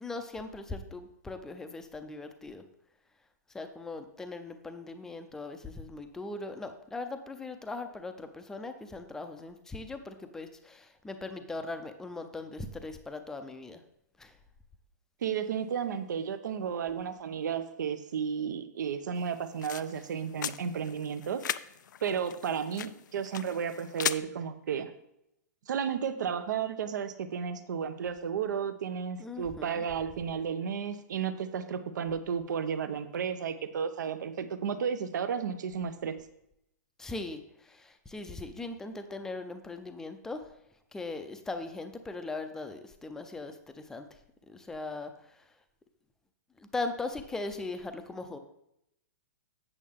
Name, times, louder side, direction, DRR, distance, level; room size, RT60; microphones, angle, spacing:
voice 1, 0.0-2.6 3.5-13.8 14.2-14.3 29.2-29.8 37.0-37.4 37.7-40.4 40.9-44.1 44.5-45.1 46.7-48.4, left 3 dB, 5° left, 7 dB, 0.5 m, -39 dB
voice 2, 15.2-21.4 22.0-24.9 25.7-36.1, right 7 dB, 80° right, 10 dB, 0.8 m, -33 dB
sound 1, 19.2-24.2, left 9 dB, 90° left, 0.4 m, -38 dB
8.3 x 6.8 x 3.6 m, 0.81 s
hypercardioid pair, 160°, 10 cm